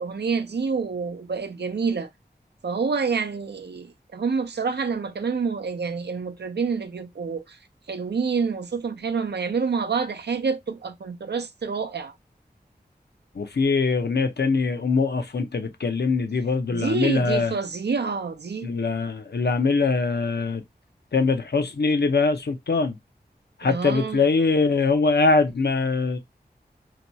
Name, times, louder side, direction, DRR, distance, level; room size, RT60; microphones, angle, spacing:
voice 1, 0.0-2.1 2.6-7.6 7.9-12.1 16.7-18.7 23.6-24.2, right 5 dB, 85° right, 0.5 m, -27 dB
voice 2, 13.4-17.5 18.6-20.6 21.1-23.0 23.6-26.2, left 4 dB, 75° left, 0.6 m, -22 dB
2.9 x 2.3 x 3.9 m
wide cardioid pair, 40°, 17 cm